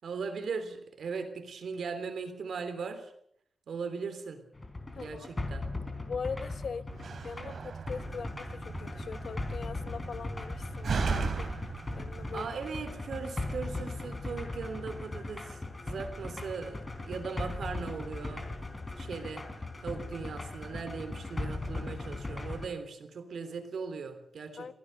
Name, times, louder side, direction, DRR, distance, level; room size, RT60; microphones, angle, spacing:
voice 1, 0.0-3.1 3.7-4.4 4.9-5.7 12.3-18.7 19.0-24.7, right 5 dB, 80° right, 9 dB, 3.4 m, -39 dB
sound 1, 4.5-22.7, left 2 dB, 25° left, 3.9 m, -39 dB
voice 2, 4.9-5.3 6.1-6.8 7.2-11.5 12.0-12.5 24.6-24.7, left 5 dB, 65° left, 12 dB, 1.1 m, -41 dB
Slam, 6.9-12.5, right 4 dB, 65° right, 3.1 m, -37 dB
24.0 x 16.5 x 6.7 m, 0.70 s
wide cardioid pair, 165°, 0 cm